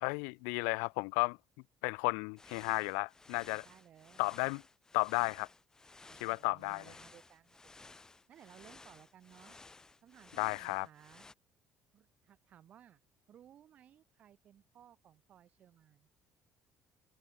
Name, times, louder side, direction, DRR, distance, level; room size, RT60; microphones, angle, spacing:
voice 1, 0.0-1.4 1.8-3.6 4.2-4.6 4.9-5.5 6.2-6.8 10.4-10.9, left 40 dB or more, 80° left, 0.4 m, -33 dB
sound 1, 2.4-11.3, left 3 dB, 20° left, 5.4 m, -57 dB
voice 2, 3.6-4.4 6.1-7.9 8.3-9.6 10.0-11.3 11.9-13.0 13.3-16.1, right 10 dB, 55° right, 7.5 m, -60 dB
hypercardioid pair, 60°, 3 cm